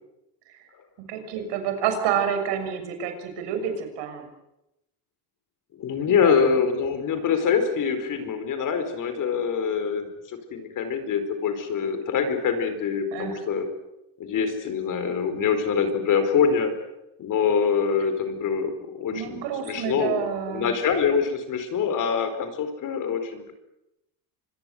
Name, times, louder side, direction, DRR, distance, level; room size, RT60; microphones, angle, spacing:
voice 1, 1.1-4.3 6.0-6.6 13.1-13.4 19.1-20.7, right 8 dB, 70° right, 6 dB, 6.6 m, -29 dB
voice 2, 5.7-13.7 14.2-16.7 17.2-23.5, left 6 dB, 45° left, 9 dB, 4.7 m, -25 dB
25.5 x 21.5 x 7.9 m, 0.89 s
cardioid pair, 135°, 43 cm